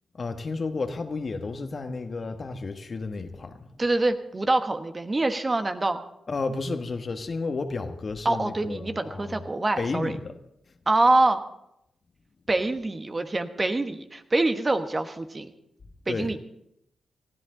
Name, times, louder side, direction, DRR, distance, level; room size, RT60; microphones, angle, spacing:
voice 1, 0.1-3.7 6.3-9.4 9.8-10.3 16.1-16.3, left 3 dB, 50° left, 7 dB, 1.3 m, -32 dB
voice 2, 3.8-6.0 8.2-10.2 10.9-11.4 12.5-15.5 16.1-16.4, right 2 dB, 35° right, 8 dB, 1.2 m, -25 dB
19.5 x 13.5 x 3.8 m, 0.79 s
supercardioid pair, 45°, 0 cm